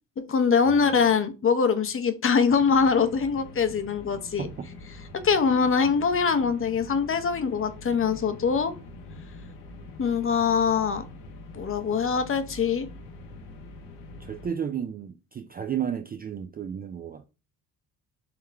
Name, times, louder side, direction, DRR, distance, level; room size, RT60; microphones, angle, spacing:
voice 1, 0.2-4.5 5.2-8.7 10.0-11.0 11.5-12.9, left 6 dB, 30° left, 0.7 m, -23 dB
sound 1, 2.5-14.5, left 2 dB, 80° left, 1.1 m, -44 dB
voice 2, 14.2-17.3, right 8 dB, 25° right, 0.3 m, -33 dB
3.8 x 3.1 x 3.3 m
supercardioid pair, 70°, 40 cm